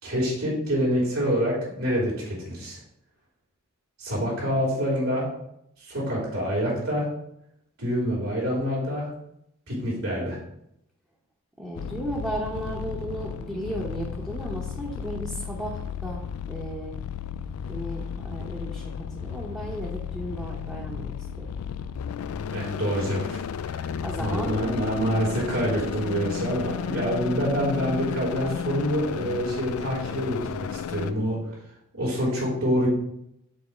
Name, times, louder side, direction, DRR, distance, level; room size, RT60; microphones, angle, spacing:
voice 1, 0.0-2.8 4.0-5.3 5.8-7.1 7.8-9.1 9.7-10.4 22.5-23.4 23.6-23.9 24.2-31.4 32.0-32.9, equal, 70° right, -4 dB, 2.8 m, -26 dB
voice 2, 11.6-16.2 16.5-17.0 17.7-21.5 24.0-24.6, right 1 dB, 5° right, -4 dB, 0.8 m, -34 dB
sound 1, 11.8-31.1, left 7 dB, 80° left, 0.3 m, -33 dB
5.3 x 4.1 x 6.0 m, 0.76 s
head